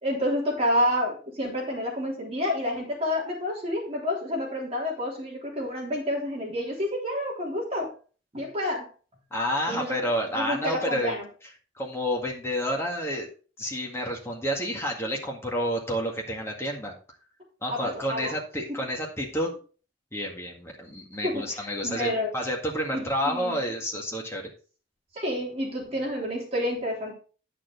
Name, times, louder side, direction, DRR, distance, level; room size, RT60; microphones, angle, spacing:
voice 1, 0.0-7.9 8.3-8.9 9.7-10.0 10.4-11.3 17.7-18.3 21.2-22.3 22.9-23.7 25.1-27.1, left 1 dB, 30° right, -3 dB, 3.5 m, -29 dB
voice 2, 9.3-11.2 11.8-13.3 13.6-16.9 17.6-19.5 20.1-24.5, equal, 15° left, -1 dB, 1.9 m, -30 dB
9.4 x 6.9 x 4.0 m, 0.38 s
head